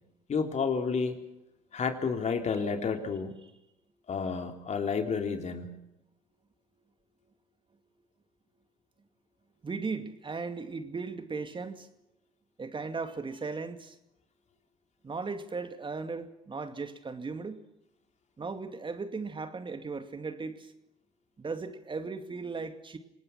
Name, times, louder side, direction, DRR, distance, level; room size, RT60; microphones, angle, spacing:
voice 1, 0.3-1.2 1.7-3.3 4.1-5.8, left 5 dB, 45° left, 5 dB, 3.7 m, -30 dB
voice 2, 9.6-11.9 12.6-14.0 15.0-17.6 18.4-20.7 21.4-23.0, right 4 dB, 30° right, 8 dB, 2.4 m, -37 dB
28.0 x 19.0 x 6.0 m, 0.85 s
hypercardioid pair, 60°, 17 cm